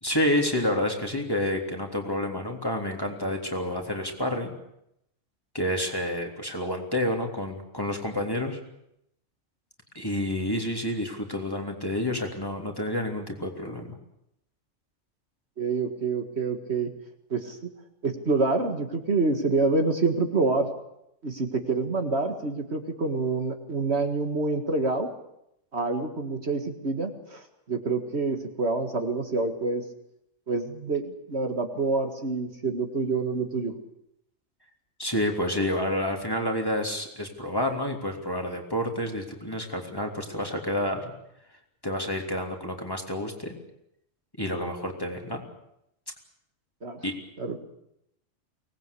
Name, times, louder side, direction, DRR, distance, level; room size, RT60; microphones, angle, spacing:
voice 1, 0.0-4.5 5.5-8.6 9.9-14.0 35.0-41.1 41.8-43.5 44.4-45.4 47.0-47.1, left 1 dB, 15° left, 2 dB, 3.3 m, -29 dB
voice 2, 15.6-16.9 17.3-17.6 18.0-20.7 21.2-25.1 25.7-29.8 30.5-33.7 46.8-47.0 47.4-47.6, right 3 dB, 55° right, 5 dB, 2.1 m, -27 dB
24.5 x 19.0 x 8.4 m, 0.80 s
omnidirectional pair, 1.3 m